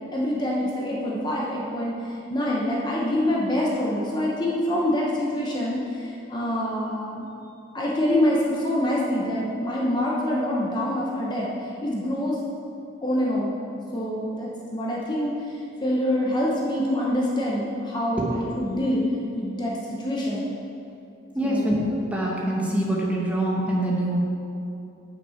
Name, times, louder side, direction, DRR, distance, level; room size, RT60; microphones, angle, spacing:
voice 1, 0.1-2.0 2.3-7.2 7.7-11.5 11.8-12.4 13.0-13.6 13.9-15.3 15.8-19.0 19.3-20.5 21.4-21.7, left 1 dB, 20° left, -4 dB, 1.0 m, -25 dB
voice 2, 21.3-21.8 22.1-24.2, right 1 dB, 5° right, -4 dB, 1.3 m, -24 dB
8.6 x 6.4 x 5.8 m, 2.7 s
head